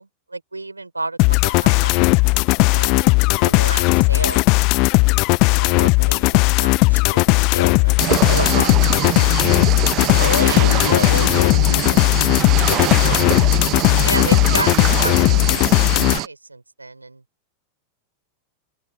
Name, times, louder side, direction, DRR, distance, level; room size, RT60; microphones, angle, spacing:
voice 1, 0.0-1.9 2.7-4.5 5.5-7.9 8.3-9.6 10.4-10.9 14.0-17.2, right 3 dB, 80° right, 4.7 m, -32 dB
sound 1, 1.2-16.2, left 28 dB, 45° left, 0.8 m, -16 dB
sound 2, 8.0-16.3, right 16 dB, 35° right, 1.0 m, -24 dB
voice 2, 10.2-13.2, left 7 dB, 70° left, 3.2 m, -28 dB
open air
figure-of-eight pair, 90°, 0 cm